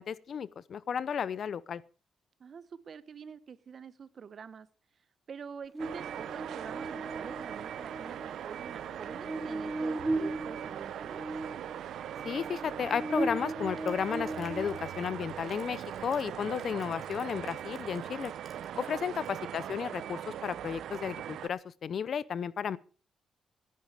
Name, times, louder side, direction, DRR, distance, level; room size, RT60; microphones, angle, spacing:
voice 1, 0.0-1.8 12.2-18.3 18.7-22.8, left 7 dB, 60° left, 20 dB, 0.7 m, -33 dB
voice 2, 2.4-4.7 5.3-11.2 18.6-18.9, right 6 dB, 55° right, 16 dB, 1.1 m, -46 dB
Buzz, 5.7-15.2, right 2 dB, 20° right, 1.0 m, -38 dB
sound 1, 5.8-21.5, right 10 dB, 80° right, 0.7 m, -40 dB
Crushing, 13.6-18.9 19.2-19.4, right 4 dB, 35° right, 3.8 m, -57 dB
18.0 x 11.0 x 5.0 m, 0.39 s
cardioid pair, 80°, 0 cm